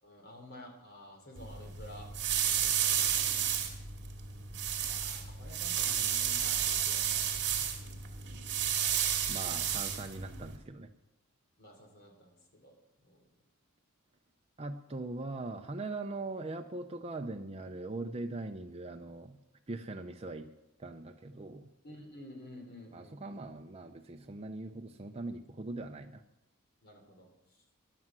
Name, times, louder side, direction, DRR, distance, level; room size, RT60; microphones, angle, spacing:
voice 1, 0.0-2.1 2.4-3.2 4.8-7.8 9.5-9.6 11.6-12.3 12.6-12.7 13.0-13.3 21.8-23.2 26.8-27.3, left 1 dB, 45° left, 3 dB, 3.3 m, -51 dB
sound 1, 1.3-10.6, right 9 dB, 50° right, 2.3 m, -32 dB
voice 2, 9.3-10.9 14.6-19.4 19.7-20.5 20.8-21.7 22.9-26.2, right 2 dB, 25° right, 4 dB, 0.6 m, -41 dB
15.0 x 11.0 x 6.1 m, 0.91 s
head